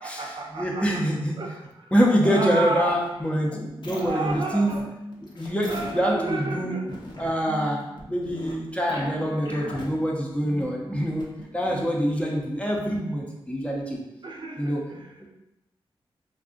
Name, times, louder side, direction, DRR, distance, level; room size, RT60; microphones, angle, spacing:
voice 1, 0.0-1.0 1.4-1.9 2.2-3.1 3.9-4.9 5.6-7.0 11.6-12.1 14.2-15.1, right 3 dB, 55° right, 1 dB, 0.6 m, -33 dB
voice 2, 0.5-1.4 1.9-4.7 5.3-6.8 7.2-14.0 14.6-14.9 15.2-15.3, equal, 10° left, -1 dB, 0.7 m, -25 dB
sound 1, 2.8-11.4, left 1 dB, 55° left, 0.8 m, -40 dB
2.5 x 2.3 x 3.7 m, 0.92 s
cardioid pair, 55°, 10 cm